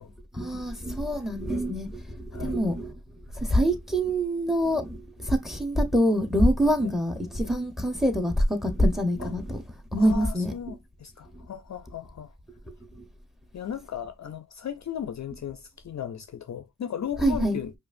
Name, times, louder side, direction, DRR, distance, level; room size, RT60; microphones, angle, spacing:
voice 1, 0.0-10.8 11.3-11.5 12.7-13.1 17.2-17.6, equal, ahead, 0.8 m, -26 dB
voice 2, 10.0-12.3 13.5-17.7, left 8 dB, 45° left, 0.5 m, -36 dB
4.7 x 2.5 x 2.5 m
cardioid pair, 55°, 39 cm